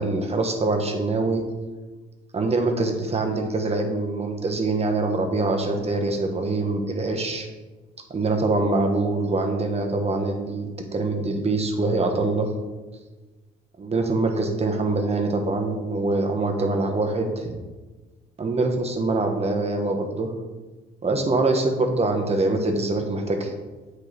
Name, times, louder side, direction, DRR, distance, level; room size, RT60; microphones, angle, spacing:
voice 1, 0.0-1.4 2.3-7.5 8.1-12.5 13.8-17.5 18.4-20.3 21.0-23.5, right 2 dB, 30° right, 3 dB, 1.2 m, -24 dB
8.5 x 4.7 x 3.4 m, 1.2 s
cardioid pair, 90°, 20 cm